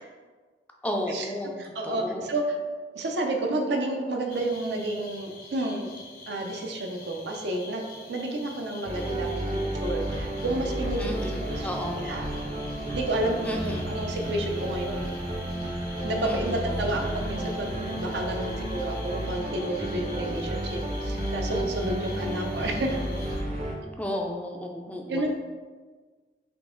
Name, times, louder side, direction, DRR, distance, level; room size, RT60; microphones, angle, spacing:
voice 1, 0.8-1.5 1.8-2.3 11.0-12.0 13.4-13.9 16.2-16.7 22.1-22.4 24.0-25.2, left 1 dB, 10° left, 1 dB, 0.3 m, -33 dB
voice 2, 1.6-2.6 2.9-5.9 6.3-7.8 8.1-11.7 12.0-12.3 12.9-15.1 16.0-22.9 25.1-25.3, right 1 dB, 75° right, 2 dB, 0.6 m, -30 dB
sound 1, 4.3-23.4, left 3 dB, 55° left, 0.5 m, -46 dB
sound 2, 8.9-23.7, right 1 dB, 40° right, 0.6 m, -32 dB
3.7 x 2.9 x 3.8 m, 1.4 s
head